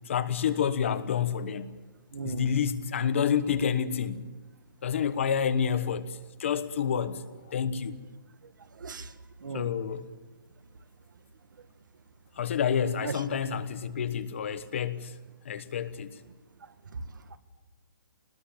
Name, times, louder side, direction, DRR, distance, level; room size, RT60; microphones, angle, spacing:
voice 1, 0.1-1.7 2.2-4.2 4.8-7.9 9.5-10.1 12.4-15.1 15.4-16.2, left 7 dB, 35° left, 1.2 m, -29 dB
voice 2, 2.1-2.5 8.4-9.1 9.4-9.7 13.0-13.2 16.9-17.4, right 4 dB, 65° right, 1.8 m, -38 dB
24.0 x 20.0 x 7.3 m
hypercardioid pair, 180°, 11 cm